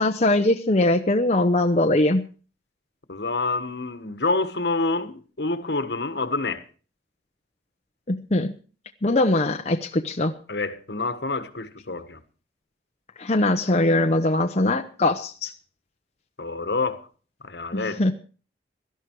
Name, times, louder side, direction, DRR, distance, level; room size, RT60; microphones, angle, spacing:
voice 1, 0.0-2.3 8.1-8.5 9.0-10.3 13.2-15.5 17.7-18.1, left 2 dB, 40° left, 0.9 m, -21 dB
voice 2, 3.1-6.6 10.5-12.2 16.4-17.0 17.4-18.0, left 3 dB, 70° left, 1.5 m, -27 dB
17.0 x 12.5 x 4.7 m
head